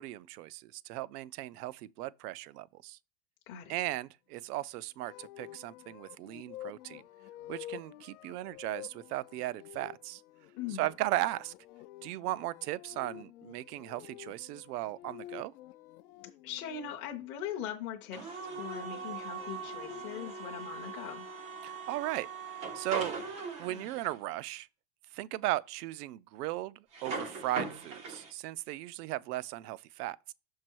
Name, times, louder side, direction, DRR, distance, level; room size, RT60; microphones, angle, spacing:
voice 1, 0.0-3.0 3.7-7.0 7.5-10.2 10.7-11.5 12.0-15.5 21.6-22.3 22.7-23.2 23.6-24.7 25.1-30.3, right 16 dB, 80° right, 0.5 m, -37 dB
sound 1, 5.0-17.0 18.1-20.3, left 13 dB, 65° left, 0.6 m, -50 dB
voice 2, 10.6-10.9 16.4-21.2, left 9 dB, 25° left, 0.6 m, -40 dB
sound 2, 18.1-24.2 26.9-28.3, right 4 dB, 15° right, 0.3 m, -40 dB
6.0 x 4.6 x 4.5 m
supercardioid pair, 160°, 47 cm